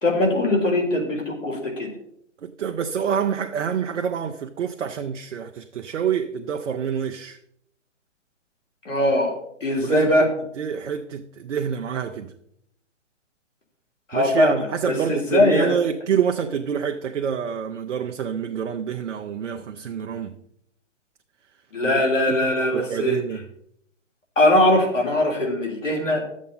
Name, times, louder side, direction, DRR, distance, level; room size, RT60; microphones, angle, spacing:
voice 1, 0.0-1.9 8.9-9.3 9.6-10.3 14.1-14.6 14.9-15.8 21.7-23.2 24.4-26.2, left 1 dB, 85° left, 3.5 m, -21 dB
voice 2, 2.4-7.4 9.8-10.3 10.6-12.3 14.1-20.3 21.8-22.0 22.3-22.4 22.7-23.4, right 7 dB, 70° right, 0.8 m, -27 dB
12.0 x 7.4 x 4.1 m
hypercardioid pair, 130°, 37 cm